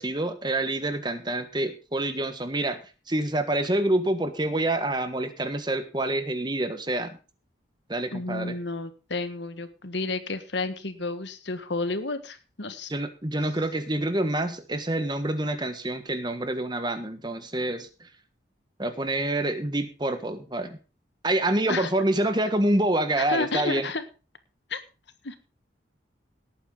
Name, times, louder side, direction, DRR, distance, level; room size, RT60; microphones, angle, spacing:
voice 1, 0.0-2.8 3.1-7.2 7.9-8.6 12.9-18.1 18.8-20.8 21.2-23.9, right 1 dB, 25° right, 9 dB, 1.4 m, -27 dB
voice 2, 8.1-12.9 21.7-21.9 23.2-24.0 24.7-24.8 25.2-25.4, left 3 dB, 70° left, 10 dB, 1.6 m, -31 dB
18.0 x 8.9 x 3.8 m, 0.33 s
head